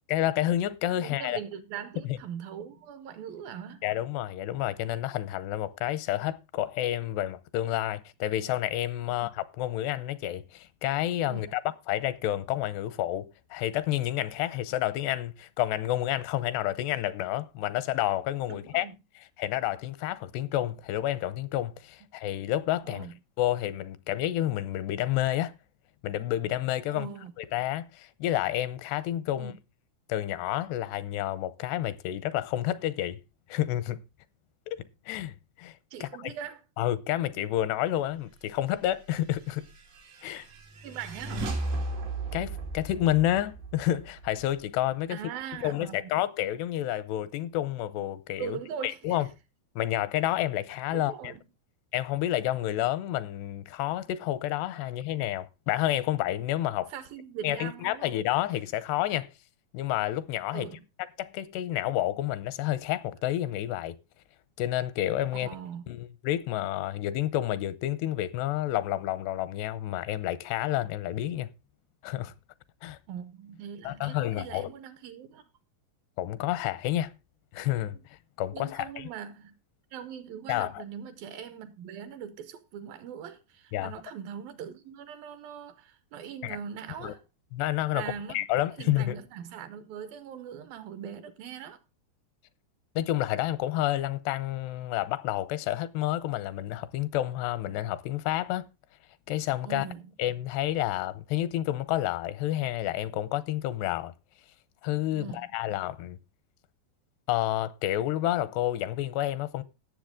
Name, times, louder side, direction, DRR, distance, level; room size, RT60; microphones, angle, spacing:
voice 1, 0.1-1.4 2.1-2.2 3.8-11.6 11.9-18.9 19.4-23.1 23.4-25.5 26.0-27.1 27.4-29.5 30.1-33.2 33.5-34.0 34.7-35.7 36.0-36.3 36.8-39.7 40.2-40.5 42.3-45.2 45.6-48.6 48.8-49.3 49.8-51.3 51.9-56.9 57.4-59.3 59.7-60.7 61.2-64.0 64.6-65.5 65.9-71.5 72.0-72.3 72.8-73.0 73.8-74.7 76.2-77.1 77.5-78.0 78.4-79.1 80.5-80.8 83.7-83.9 86.4-86.6 87.0-87.1 87.5-88.0 88.3-89.2 93.0-98.7 99.3-99.9 100.2-104.1 104.8-106.2 107.3-109.6, left 13 dB, 85° left, 2.8 m, -29 dB
voice 2, 0.9-3.8 9.0-9.2 11.3-11.5 18.5-19.0 22.8-23.1 26.9-27.3 29.3-29.6 35.9-36.6 40.8-41.7 45.1-46.3 48.4-49.2 50.9-51.4 56.9-58.2 60.5-60.8 65.3-65.8 73.1-75.5 77.9-78.0 78.5-79.6 79.9-87.2 87.9-88.4 88.8-91.8 99.7-100.1 105.1-105.5, right 8 dB, 75° right, 2.4 m, -41 dB
sound 1, 39.3-44.9, right 2 dB, 90° right, 5.3 m, -36 dB
17.5 x 7.1 x 3.6 m
omnidirectional pair, 4.7 m